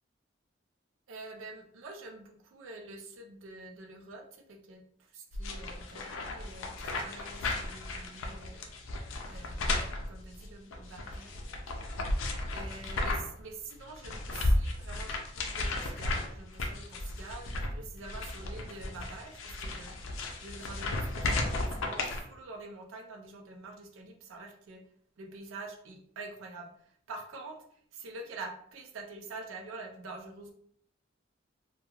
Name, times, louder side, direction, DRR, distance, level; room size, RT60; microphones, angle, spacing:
voice 1, 1.1-8.7 9.3-20.0 20.4-24.8 25.2-30.5, right 3 dB, 85° right, 2 dB, 0.5 m, -46 dB
sound 1, 5.3-13.4 13.7-22.2, left 2 dB, 85° left, 0.4 m, -34 dB
2.3 x 2.3 x 3.0 m, 0.66 s
head